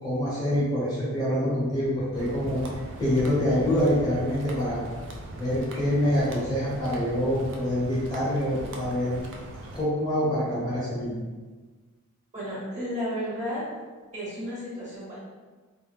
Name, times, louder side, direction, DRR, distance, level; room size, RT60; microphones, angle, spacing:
voice 1, 0.0-2.6 3.0-4.8 5.4-9.2 9.7-11.2, equal, 20° left, -8 dB, 0.7 m, -26 dB
sound 1, 2.1-9.8, right 1 dB, 55° right, 0.4 m, -40 dB
voice 2, 12.3-13.6 14.1-15.2, equal, 35° right, -8 dB, 1.0 m, -33 dB
2.4 x 2.1 x 3.3 m, 1.4 s
head